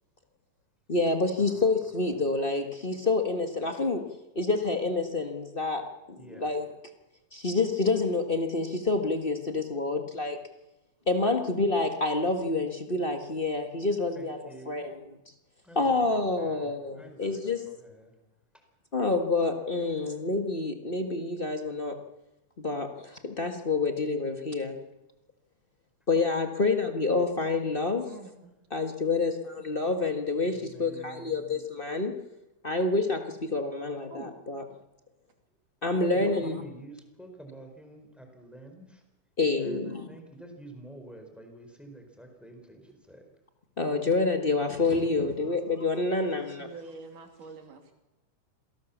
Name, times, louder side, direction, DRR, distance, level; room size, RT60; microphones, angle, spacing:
voice 1, 0.9-4.1 4.3-6.7 7.3-10.4 11.1-14.4 14.7-15.0 15.7-17.6 18.9-22.0 22.6-24.8 26.1-28.0 28.7-32.1 32.6-34.6 35.8-36.6 39.4-40.1 43.8-46.7, left 3 dB, 35° left, 5 dB, 0.8 m, -28 dB
voice 2, 6.1-6.5 14.1-14.9 15.6-18.1 20.0-20.1 30.5-31.6 35.9-39.0 39.6-43.3 47.4-47.5, right 2 dB, ahead, 4 dB, 4.4 m, -48 dB
voice 3, 28.1-28.5 34.1-34.3 46.6-47.9, right 4 dB, 80° right, 4 dB, 4.3 m, -45 dB
27.0 x 18.0 x 7.3 m, 0.99 s
omnidirectional pair, 3.6 m